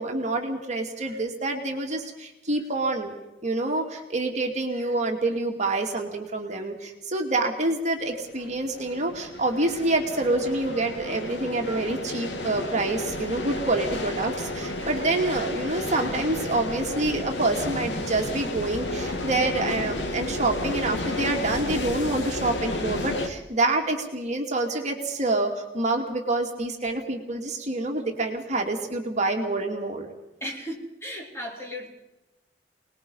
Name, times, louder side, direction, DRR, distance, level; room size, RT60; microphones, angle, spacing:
voice 1, 0.0-3.1 3.4-30.1, right 2 dB, 40° right, 2 dB, 2.6 m, -27 dB
sound 1, 8.1-23.3, left 2 dB, 90° left, 2.3 m, -32 dB
voice 2, 30.4-31.9, equal, 15° left, -1 dB, 4.4 m, -35 dB
27.5 x 20.0 x 5.5 m, 0.99 s
head